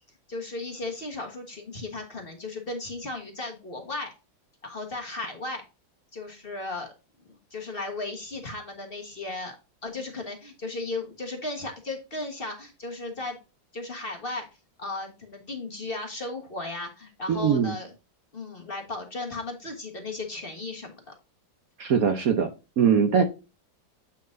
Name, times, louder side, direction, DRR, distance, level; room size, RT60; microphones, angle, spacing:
voice 1, 0.3-4.1 4.6-5.6 6.1-6.9 7.2-9.6 9.8-13.4 13.7-14.4 14.8-17.9 18.3-21.1, left 2 dB, 30° left, 2 dB, 1.5 m, -35 dB
voice 2, 17.3-17.8 21.8-22.5 22.8-23.2, right 7 dB, 60° right, 7 dB, 1.1 m, -21 dB
8.6 x 5.7 x 2.6 m, 0.29 s
omnidirectional pair, 2.0 m